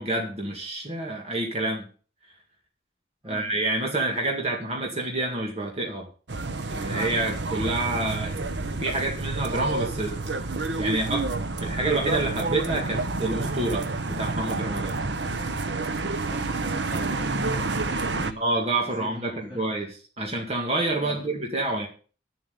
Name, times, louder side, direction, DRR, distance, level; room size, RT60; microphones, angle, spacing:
voice 1, 0.0-1.9 3.2-6.1 6.7-8.3 8.8-10.2 10.8-11.3 11.6-15.0 18.4-19.9 20.2-21.9, right 2 dB, 30° right, 0 dB, 2.0 m, -28 dB
sound 1, 6.3-18.3, right 3 dB, 60° right, 0.9 m, -29 dB
voice 2, 16.3-18.4 19.0-19.6 21.0-21.2, equal, 5° right, -7 dB, 3.8 m, -42 dB
11.0 x 7.5 x 7.0 m, 0.39 s
head